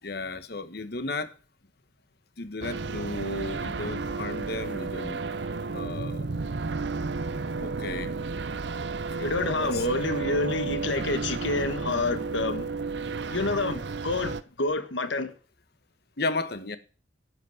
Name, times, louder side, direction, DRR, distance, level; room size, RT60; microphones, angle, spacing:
voice 1, 0.0-1.3 2.4-5.2 5.7-6.2 7.6-8.1 9.2-9.9 16.2-16.8, left 3 dB, 55° left, 1.4 m, -34 dB
sound 1, 2.6-14.4, right 4 dB, 65° right, 0.7 m, -32 dB
voice 2, 9.2-12.7 13.3-15.3, left 3 dB, 75° left, 1.5 m, -28 dB
11.5 x 8.2 x 6.6 m
head